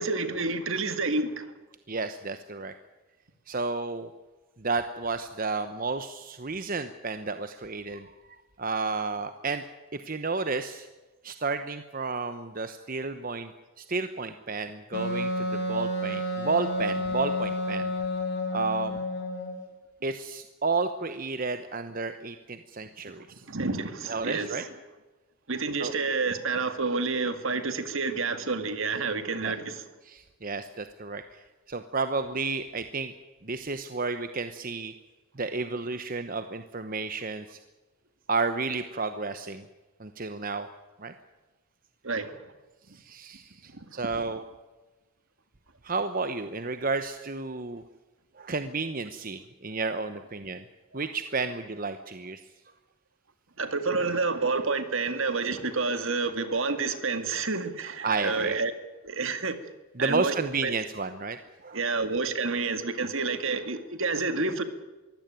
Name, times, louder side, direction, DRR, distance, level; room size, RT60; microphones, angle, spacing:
voice 1, 0.0-1.5 23.3-24.7 25.5-29.9 42.0-42.4 43.7-43.9 53.6-58.7 59.0-59.6 60.0-60.4 60.6-60.7 61.7-64.6, right 4 dB, 60° right, 9 dB, 2.0 m, -29 dB
voice 2, 1.9-2.7 3.5-4.1 4.6-8.1 8.6-9.6 9.9-10.9 11.2-13.5 13.8-17.9 18.5-19.0 20.0-23.4 24.1-24.6 25.8-25.9 29.4-29.5 30.0-33.1 33.4-34.9 35.4-37.6 38.3-39.7 40.0-40.7 41.0-41.1 42.9-44.4 45.8-47.8 48.4-50.6 50.9-52.4 58.0-58.6 60.0-62.0, right 4 dB, 40° right, 9 dB, 0.9 m, -32 dB
Wind instrument woodwind instrument, 14.9-19.6, left 1 dB, 50° left, 4.4 m, -30 dB
23.0 x 16.0 x 9.1 m, 1.2 s
head